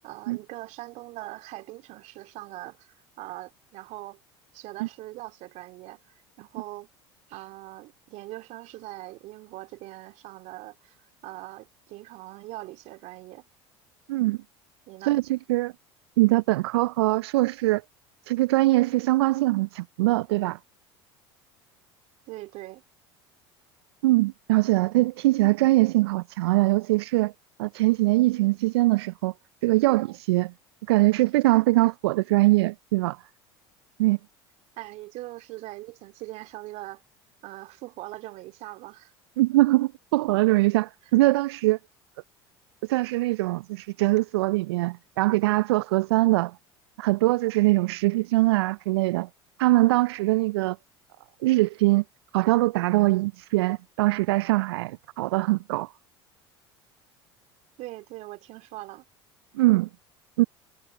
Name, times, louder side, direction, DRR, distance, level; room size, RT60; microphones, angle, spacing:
voice 1, 0.0-4.2 4.5-6.9 7.3-13.4 14.9-15.2 22.3-22.8 34.8-37.0 37.4-39.1 57.8-59.0, right 18 dB, 60° right, 2.7 m, -41 dB
voice 2, 15.0-15.7 16.2-17.8 18.3-20.6 24.0-27.3 27.6-29.3 29.6-30.5 30.9-33.2 34.0-34.2 39.4-41.8 42.8-46.5 47.0-49.3 49.6-50.8 51.4-52.0 52.3-55.9 59.5-59.9 60.4-60.5, right 19 dB, 75° right, 0.4 m, -22 dB
hypercardioid pair, 75°, 13 cm